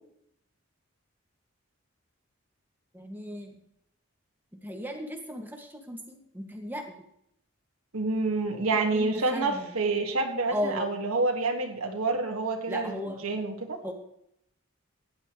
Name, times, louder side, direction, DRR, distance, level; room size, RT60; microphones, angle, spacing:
voice 1, 2.9-3.5 4.5-6.8 8.5-9.7 10.5-11.0 12.7-13.2 13.8-13.9, equal, 10° right, 2 dB, 2.0 m, -36 dB
voice 2, 7.9-13.8, right 3 dB, 80° right, 3 dB, 2.0 m, -28 dB
17.5 x 11.0 x 3.3 m, 0.75 s
head